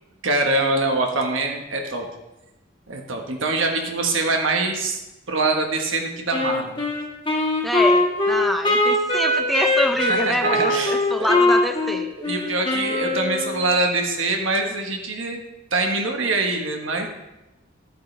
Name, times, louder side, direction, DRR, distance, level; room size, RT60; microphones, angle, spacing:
voice 1, 0.2-2.1 2.9-5.0 5.3-6.8 10.0-11.3 11.9-15.4 15.7-17.1, right 2 dB, 75° right, 3 dB, 1.3 m, -24 dB
Wind instrument woodwind instrument, 6.3-13.8, left 2 dB, 25° left, 1.8 m, -21 dB
voice 2, 7.6-12.1, equal, ahead, 5 dB, 0.5 m, -26 dB
11.5 x 8.6 x 3.3 m, 0.99 s
head